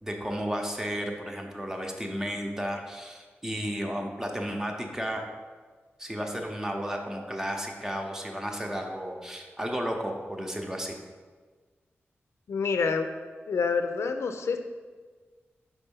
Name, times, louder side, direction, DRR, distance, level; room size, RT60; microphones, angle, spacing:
voice 1, 0.0-5.2 6.0-10.9, equal, 10° right, 2 dB, 0.8 m, -33 dB
voice 2, 12.5-13.1 13.5-14.6, left 5 dB, 85° left, 7 dB, 0.5 m, -27 dB
5.5 x 4.4 x 5.4 m, 1.4 s
wide cardioid pair, 145°, 5 cm